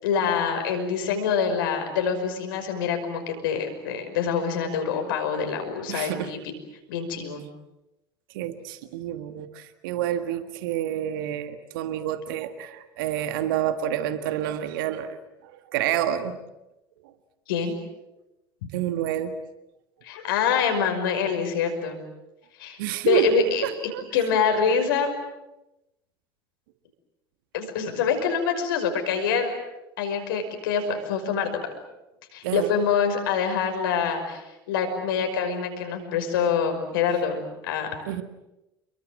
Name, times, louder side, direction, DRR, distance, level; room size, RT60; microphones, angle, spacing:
voice 1, 0.0-6.4 6.9-7.4 17.5-17.7 20.0-22.0 22.6-22.8 23.1-23.7 24.1-25.1 27.5-29.5 30.0-31.6 32.3-38.0, left 6 dB, 65° left, 5 dB, 5.6 m, -25 dB
voice 2, 5.9-6.3 8.3-15.2 15.4-16.4 18.7-19.4 22.8-24.0 32.4-32.7 38.1-38.2, right 11 dB, 65° right, 10 dB, 1.7 m, -28 dB
29.5 x 23.0 x 7.8 m, 0.94 s
figure-of-eight pair, 65°, 12 cm